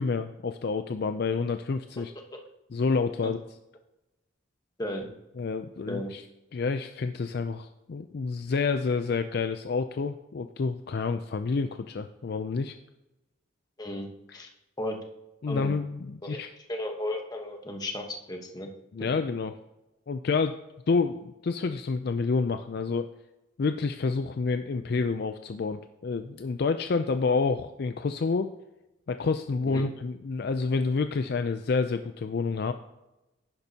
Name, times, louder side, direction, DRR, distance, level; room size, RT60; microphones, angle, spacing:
voice 1, 0.0-2.1 2.7-3.4 5.4-6.2 6.5-12.8 14.3-14.5 15.4-16.5 18.9-19.5 20.1-20.6 20.9-23.1 23.6-28.5 29.1-32.7, left 4 dB, 50° left, 9 dB, 0.4 m, -28 dB
voice 2, 4.8-5.1 5.9-6.1 13.8-14.5 14.8-15.0 15.5-15.7 16.2-16.4 16.7-18.7 29.6-29.9, left 1 dB, 20° left, 3 dB, 1.1 m, -34 dB
10.5 x 10.5 x 2.8 m, 0.96 s
head